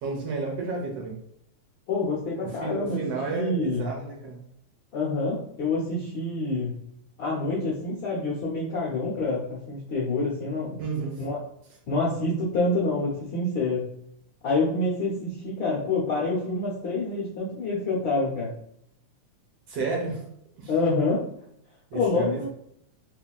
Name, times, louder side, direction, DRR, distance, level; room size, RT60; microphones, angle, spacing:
voice 1, 0.0-1.2 2.4-4.4 10.8-11.2 19.7-20.2 20.6-20.7 21.9-22.5, right 4 dB, 65° right, 0 dB, 1.6 m, -31 dB
voice 2, 1.9-3.0 3.3-3.8 4.9-6.7 7.2-10.8 11.2-11.4 11.9-13.9 14.4-18.5 20.7-21.2 21.9-22.5, left 2 dB, 65° left, -6 dB, 1.2 m, -27 dB
5.5 x 2.8 x 2.3 m, 0.72 s
omnidirectional pair, 3.5 m